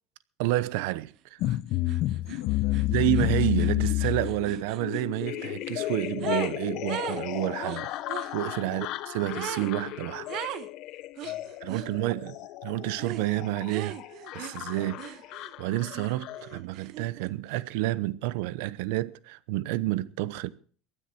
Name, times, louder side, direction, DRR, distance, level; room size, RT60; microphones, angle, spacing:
voice 1, 0.4-1.4 2.9-7.9 8.3-10.4 11.6-12.3 12.6-14.0 14.3-15.0 15.6-20.5, right 17 dB, 80° right, 0.9 m, -29 dB
sound 1, 1.4-16.6, left 17 dB, 55° left, 0.8 m, -32 dB
sound 2, 1.4-1.6 1.9-6.6 6.9-8.3 9.3-9.7 10.3-10.7 11.2-11.9 13.0-13.3 13.7-15.5 15.9-17.3, right 12 dB, 55° right, 1.2 m, -40 dB
voice 2, 1.8-3.0 8.7-9.0 11.2-12.3 14.7-15.0, left 11 dB, 85° left, 3.8 m, -52 dB
23.0 x 10.0 x 4.4 m
supercardioid pair, 130°, 0 cm